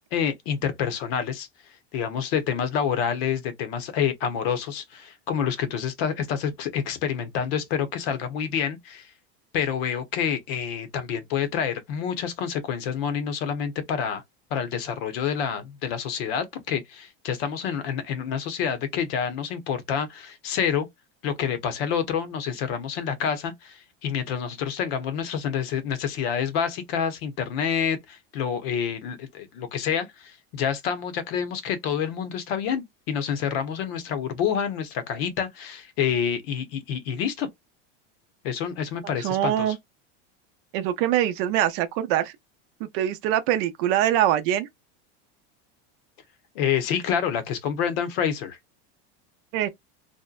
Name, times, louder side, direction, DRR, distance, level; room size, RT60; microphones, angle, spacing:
voice 1, 0.1-1.5 1.9-9.1 9.5-14.2 14.5-20.9 21.2-37.5 38.4-39.7 46.5-48.6, left 8 dB, 65° left, 0.8 m, -28 dB
voice 2, 39.0-39.8 40.7-42.3 42.9-44.7 49.5-49.7, right 12 dB, 55° right, 0.5 m, -23 dB
2.6 x 2.1 x 2.3 m
supercardioid pair, 160°, 33 cm